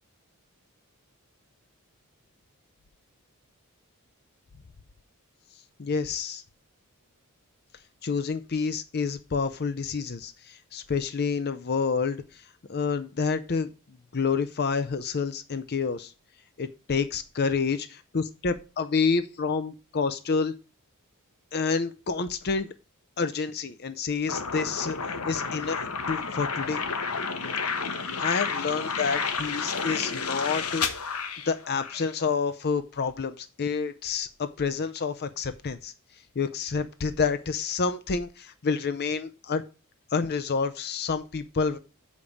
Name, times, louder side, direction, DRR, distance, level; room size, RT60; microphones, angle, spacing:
voice 1, 5.8-6.4 8.0-12.4 12.7-13.7 14.1-16.1 16.6-20.5 21.5-22.7 23.2-25.0 25.2-25.8 26.1-26.8 28.2-30.9 31.5-35.9 36.4-39.6 40.1-41.8, left 5 dB, 45° left, 12 dB, 0.5 m, -28 dB
sound 1, 24.3-32.1, left 5 dB, 80° left, 1.1 m, -31 dB
6.5 x 5.2 x 7.0 m, 0.33 s
head